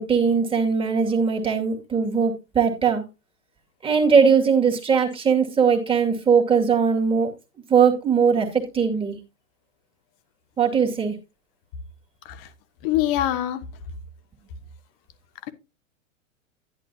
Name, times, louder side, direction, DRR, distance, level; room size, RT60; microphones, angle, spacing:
voice 1, 0.0-3.0 3.8-7.3 7.7-9.2 10.6-11.2, right 6 dB, 15° right, 2.3 m, -20 dB
voice 2, 12.8-13.6, left 13 dB, 45° left, 1.4 m, -24 dB
11.0 x 10.5 x 2.8 m
hypercardioid pair, 130°, 39 cm